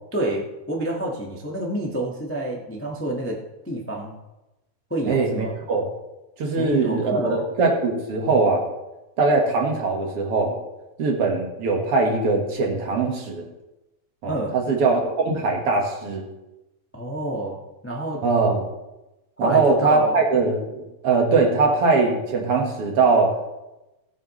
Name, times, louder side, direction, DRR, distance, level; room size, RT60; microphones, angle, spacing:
voice 1, 0.1-3.4 3.6-4.2 4.9-5.5 6.6-7.4 14.3-14.5 16.9-17.6 17.8-18.2 19.4-20.2, right 1 dB, 10° left, -2 dB, 0.6 m, -28 dB
voice 2, 5.1-5.9 6.4-8.6 9.2-10.6 11.0-13.4 14.2-16.3 18.2-18.7 19.4-23.4, right 3 dB, 55° right, 1 dB, 2.4 m, -21 dB
18.0 x 8.6 x 3.2 m, 0.99 s
omnidirectional pair, 3.4 m